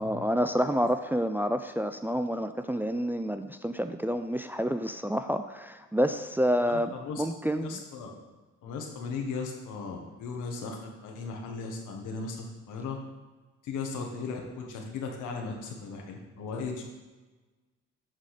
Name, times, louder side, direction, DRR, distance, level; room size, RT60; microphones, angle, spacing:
voice 1, 0.0-7.8, equal, 5° right, 8 dB, 0.4 m, -29 dB
voice 2, 6.6-7.2 7.6-8.1 8.6-13.0 13.6-16.8, left 4 dB, 85° left, 1 dB, 1.6 m, -37 dB
8.8 x 3.9 x 6.6 m, 1.2 s
cardioid pair, 90°, 30 cm